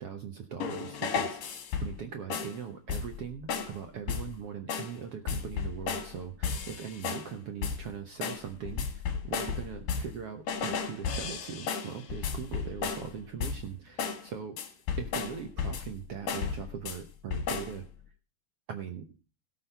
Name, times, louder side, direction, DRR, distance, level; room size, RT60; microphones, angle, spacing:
voice 1, 0.0-14.6 15.0-17.8 18.7-19.1, right 7 dB, 70° right, 6 dB, 1.4 m, -40 dB
sound 1, 0.6-2.0 2.3-2.6 2.9-3.2 3.5-3.8 4.1-4.4 4.7-5.0 5.3-6.1 6.4-7.3 7.6-7.9 8.2-10.2 10.5-13.1 13.4-13.7 14.0-14.3 14.6-16.0 16.3-17.0 17.3-17.8, left 6 dB, 65° left, 3.3 m, -34 dB
17.5 x 6.4 x 5.6 m, 0.35 s
omnidirectional pair, 4.2 m